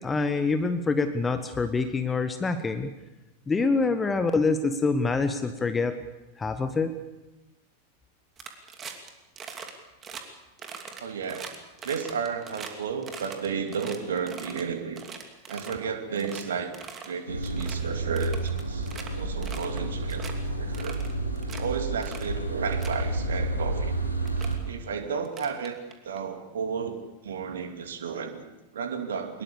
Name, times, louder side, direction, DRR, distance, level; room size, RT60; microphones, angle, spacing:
voice 1, 0.0-2.9 3.5-6.0 6.4-6.9, left 4 dB, 15° left, 9 dB, 1.3 m, -26 dB
sound 1, 8.4-9.1 9.4-9.7 10.0-10.2 10.6-12.7 13.0-14.6 15.0-15.9 16.2-16.4 16.7-17.1 17.4-17.8 18.2-19.1 19.4-19.8 20.1-20.3 20.7-21.6 22.0-22.3 22.6-23.0 23.8-23.9 24.3-24.5 25.2-26.2, right 6 dB, 25° right, 2.9 m, -41 dB
voice 2, 11.0-11.5 11.8-15.0 15.5-16.7 17.0-18.9 19.1-20.2 20.6-21.1 21.6-24.0 24.6-25.8 26.0-29.4, right 6 dB, 65° right, 6 dB, 2.5 m, -33 dB
sound 2, 17.3-24.6, right 2 dB, 85° right, 3.3 m, -30 dB
22.5 x 21.0 x 7.0 m, 1.0 s
figure-of-eight pair, 90°, 0 cm